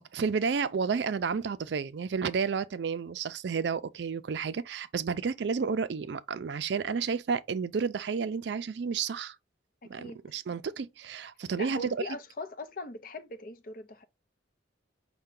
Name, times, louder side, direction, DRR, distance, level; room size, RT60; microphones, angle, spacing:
voice 1, 0.1-9.4 9.9-12.0, right 5 dB, 65° right, 0.4 m, -31 dB
voice 2, 9.8-10.2 11.6-14.0, left 2 dB, 50° left, 0.6 m, -40 dB
5.5 x 2.2 x 3.6 m
head